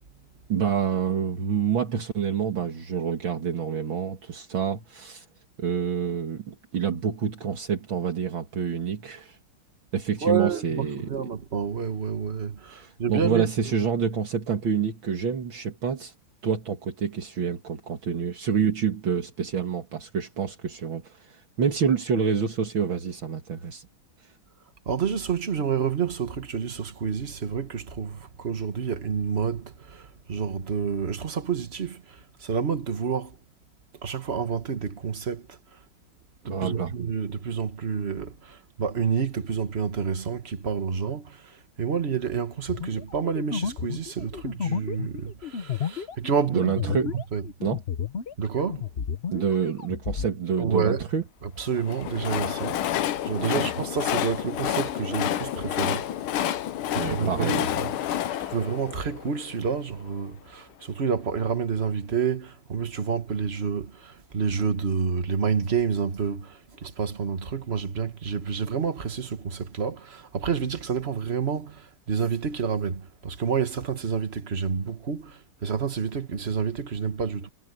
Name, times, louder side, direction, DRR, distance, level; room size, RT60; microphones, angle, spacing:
voice 1, 0.5-5.2 5.6-9.4 9.9-11.1 12.7-16.1 16.4-23.9 36.5-36.9 46.5-47.1 47.6-47.8 49.3-51.2 53.4-53.7 57.0-57.7, right 7 dB, 70° right, 2.6 m, -27 dB
voice 2, 10.2-13.7 24.8-33.4 34.0-35.6 36.4-47.5 48.4-48.8 50.6-51.1 51.4-52.8 53.2-56.1 56.9-77.5, right 6 dB, 35° right, 1.5 m, -29 dB
sound 1, 42.7-48.4 48.7-50.3, left 7 dB, 50° left, 0.7 m, -32 dB
Train, 51.7-59.9, left 11 dB, 90° left, 1.8 m, -29 dB
omnidirectional pair, 2.3 m